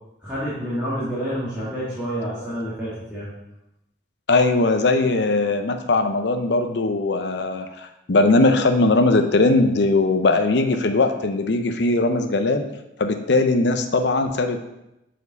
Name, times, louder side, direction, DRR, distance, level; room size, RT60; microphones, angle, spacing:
voice 1, 0.2-3.3, equal, 5° right, -12 dB, 1.9 m, -28 dB
voice 2, 4.3-12.6 13.0-14.6, left 2 dB, 65° left, 7 dB, 0.6 m, -20 dB
7.2 x 4.5 x 4.0 m, 0.91 s
head